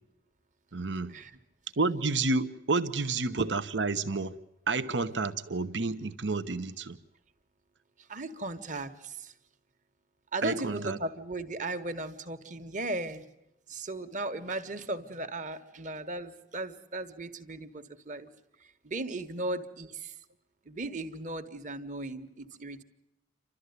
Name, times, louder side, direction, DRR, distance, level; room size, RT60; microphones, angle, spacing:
voice 1, 0.7-1.1 1.8-4.4 4.7-7.0 10.4-11.0, right 3 dB, 80° right, 12 dB, 1.0 m, -30 dB
voice 2, 8.0-9.3 10.3-13.2 13.7-18.3 18.6-20.2 20.6-22.8, right 2 dB, 45° right, 9 dB, 1.6 m, -37 dB
29.5 x 13.5 x 9.5 m, 0.88 s
head